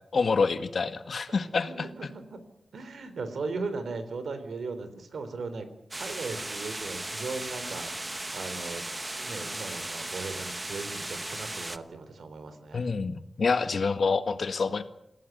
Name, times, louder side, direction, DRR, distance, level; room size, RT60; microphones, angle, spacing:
voice 1, 0.1-1.9 12.7-14.8, left 4 dB, 50° left, 9 dB, 1.7 m, -27 dB
voice 2, 1.3-2.4 2.7-5.7 5.9-12.9, right 3 dB, 70° right, 10 dB, 3.9 m, -38 dB
sound 1, 5.9-11.8, right 2 dB, 15° right, 1.0 m, -36 dB
28.5 x 16.0 x 9.4 m, 0.83 s
wide cardioid pair, 175°, 0 cm